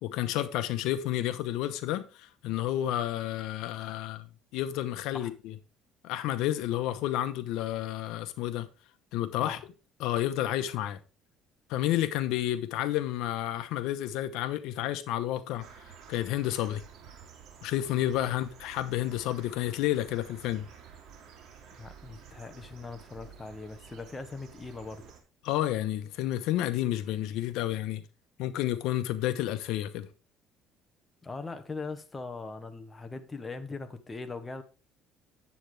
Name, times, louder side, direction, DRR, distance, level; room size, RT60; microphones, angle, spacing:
voice 1, 0.0-4.3 4.5-5.5 6.0-8.7 9.1-9.6 10.0-11.0 11.7-15.7 16.1-16.8 17.6-20.7 25.4-28.0 28.4-30.1, left 13 dB, 80° left, 0.9 m, -30 dB
sound 1, 15.6-25.2, right 7 dB, 55° right, 2.8 m, -52 dB
voice 2, 21.8-25.0 31.2-34.6, left 3 dB, 15° left, 1.1 m, -40 dB
9.8 x 8.0 x 3.3 m
cardioid pair, 135°, 0 cm